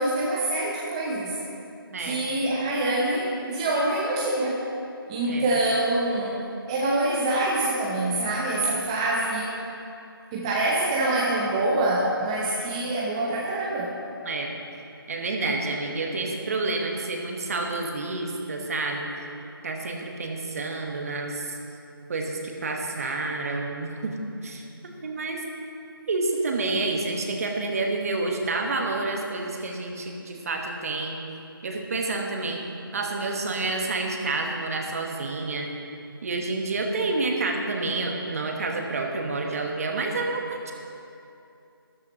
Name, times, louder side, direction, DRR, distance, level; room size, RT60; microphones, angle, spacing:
voice 1, 0.0-1.3 2.0-4.6 5.1-6.4 6.7-9.5 10.3-13.9, right 2 dB, 15° right, -4 dB, 0.7 m, -25 dB
voice 2, 1.9-2.2 5.2-5.5 14.2-14.5 15.1-19.1 19.6-21.6 22.1-24.2 24.4-24.6 25.0-25.4 26.1-31.2 31.6-32.6 32.9-35.7 36.2-40.7, right 3 dB, 40° right, 2 dB, 1.3 m, -29 dB
13.5 x 13.0 x 3.0 m, 2.7 s
figure-of-eight pair, 155°, 13 cm